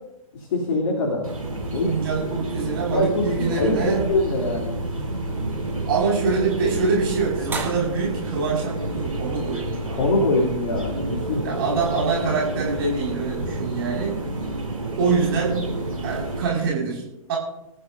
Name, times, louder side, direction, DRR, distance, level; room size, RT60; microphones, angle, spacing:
voice 1, 0.3-1.2 1.7-1.9 2.9-3.3 3.6-4.8 9.9-11.4, left 2 dB, 45° left, -1 dB, 2.9 m, -23 dB
sound 1, 1.2-16.4, right 1 dB, 80° right, 4.4 m, -29 dB
voice 2, 1.8-4.0 5.9-10.0 11.4-14.2 15.0-15.6 16.0-17.0 17.3-17.4, right 5 dB, 40° right, -3 dB, 5.3 m, -25 dB
sound 2, 3.3-9.8, right 4 dB, 10° right, 2.1 m, -41 dB
26.0 x 14.0 x 2.7 m, 0.92 s
figure-of-eight pair, 115°, 18 cm